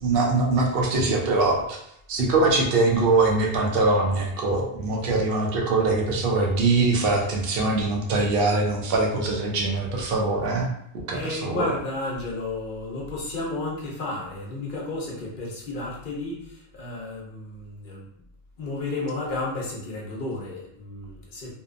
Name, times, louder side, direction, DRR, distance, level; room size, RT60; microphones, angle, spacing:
voice 1, 0.0-1.8 2.1-10.7 11.1-11.6, right 3 dB, 70° right, -1 dB, 0.7 m, -22 dB
voice 2, 11.1-18.1 18.6-21.5, left 2 dB, 55° left, -3 dB, 0.8 m, -32 dB
2.7 x 2.1 x 2.4 m, 0.74 s
omnidirectional pair, 1.1 m